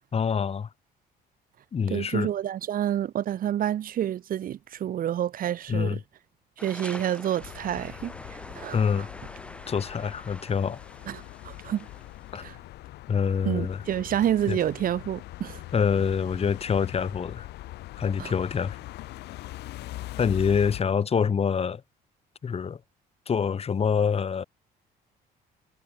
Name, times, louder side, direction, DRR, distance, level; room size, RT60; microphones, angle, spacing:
voice 1, 0.1-0.7 1.7-2.3 5.7-6.0 8.7-9.1 9.7-10.8 12.3-12.4 13.1-13.8 14.5-14.6 15.7-17.5 18.0-18.8 20.2-21.8 22.4-22.8 23.3-24.4, left 6 dB, 35° left, 5.1 m, -26 dB
voice 2, 1.9-6.0 6.6-9.1 11.1-11.9 12.4-12.6 13.4-15.6 18.2-18.3, right 11 dB, 55° right, 2.6 m, -29 dB
sound 1, 6.6-12.3, left 1 dB, 5° left, 4.4 m, -45 dB
sound 2, 7.4-20.8, left 17 dB, 80° left, 2.8 m, -42 dB
cardioid pair, 110°, 17 cm